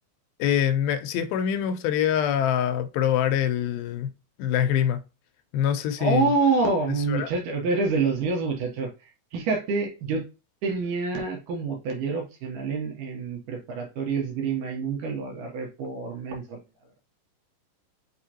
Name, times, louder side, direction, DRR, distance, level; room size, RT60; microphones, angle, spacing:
voice 1, 0.4-4.1 4.4-5.0 5.5-6.3 7.1-7.3, left 9 dB, 85° left, 2.5 m, -24 dB
voice 2, 6.0-10.3 10.6-16.6, right 4 dB, 70° right, 2.4 m, -27 dB
6.0 x 2.8 x 2.8 m
omnidirectional pair, 4.2 m